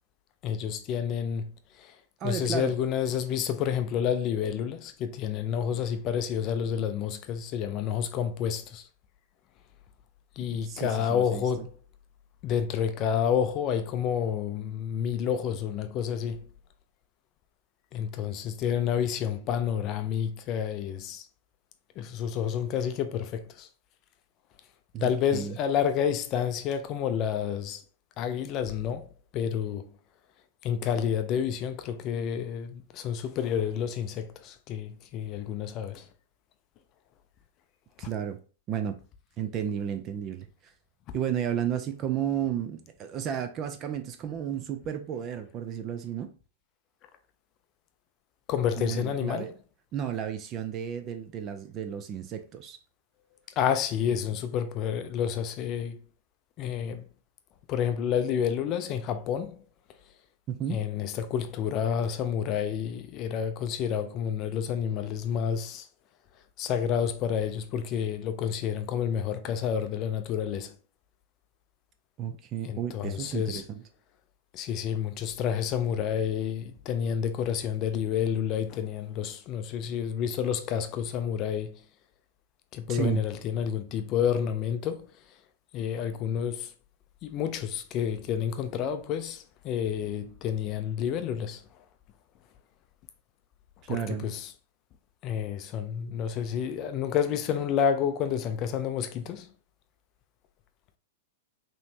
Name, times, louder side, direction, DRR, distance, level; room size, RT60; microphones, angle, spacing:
voice 1, 0.4-2.0 2.2-8.9 10.4-11.7 12.4-16.5 17.9-21.3 22.0-23.7 25.0-27.8 28.2-29.9 30.6-36.1 48.5-49.5 53.6-56.0 56.6-57.0 57.7-59.6 60.7-65.9 66.6-70.7 72.6-73.6 74.5-81.8 82.7-85.1 85.7-86.7 87.2-91.6 93.9-94.5 95.2-99.5, left 8 dB, 35° left, 0.5 m, -29 dB
voice 2, 2.2-2.8 10.4-11.4 24.9-25.6 38.0-38.4 38.7-39.0 39.4-40.5 41.1-46.3 48.8-49.5 49.9-52.8 60.5-60.8 72.2-73.8 82.9-83.2 93.8-94.3, right 9 dB, 30° right, 0.5 m, -33 dB
5.3 x 3.1 x 2.8 m
supercardioid pair, 145°, 0 cm